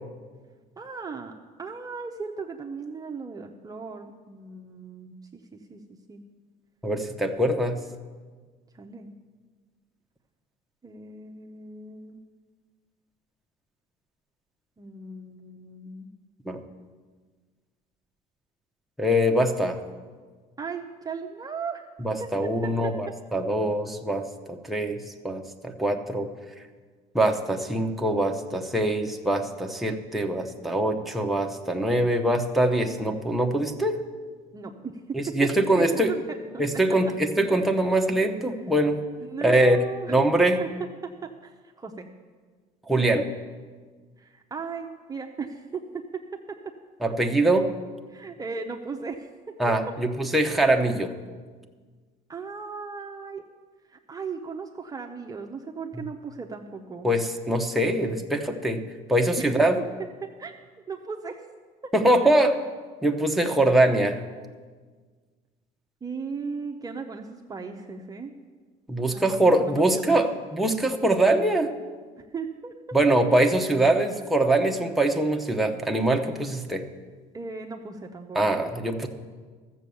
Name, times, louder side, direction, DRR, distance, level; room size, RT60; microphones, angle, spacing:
voice 1, 0.8-1.3 1.6-5.8 6.1-6.2 8.7-9.1 10.8-12.2 14.8-16.1 20.6-21.9 22.2-22.9 34.5-35.2 35.8-36.2 36.5-36.8 39.2-40.7 41.0-42.1 44.2-46.0 46.5-46.6 48.1-49.3 52.3-53.4 53.9-57.1 59.3-59.5 60.2-60.5 60.9-61.4 61.8-61.9 66.0-68.3 69.1-70.2 72.2-73.0 77.3-78.5, right 5 dB, 20° right, 2 dB, 0.7 m, -37 dB
voice 2, 6.8-7.8 16.5-16.6 19.0-19.8 22.0-26.3 27.1-34.0 35.1-36.1 36.6-39.0 39.4-39.8 40.1-40.6 42.9-43.3 47.0-47.7 49.6-51.1 57.0-58.8 59.1-59.8 61.9-62.5 63.0-64.2 68.9-71.7 72.9-76.9 78.3-79.1, right 1 dB, ahead, 2 dB, 0.9 m, -23 dB
13.5 x 7.4 x 7.0 m, 1.5 s
cardioid pair, 115°, 18 cm